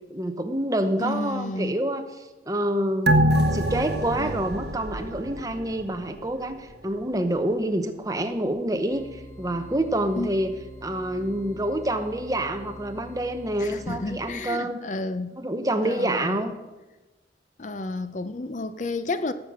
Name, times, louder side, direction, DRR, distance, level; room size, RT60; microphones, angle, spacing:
voice 1, 0.1-10.5 10.8-14.8 15.4-16.5, right 1 dB, 20° right, 0.9 m, -27 dB
voice 2, 1.0-1.7 4.2-4.3 10.2-10.3 13.6-15.4 15.8-16.4 17.6-19.3, left 2 dB, 40° left, 0.6 m, -31 dB
sound 1, 3.1-6.0 6.3-6.4, right 1 dB, 60° right, 1.2 m, -24 dB
sound 2, 8.9-14.3, equal, 15° left, 1.9 m, -44 dB
17.5 x 7.7 x 6.3 m
head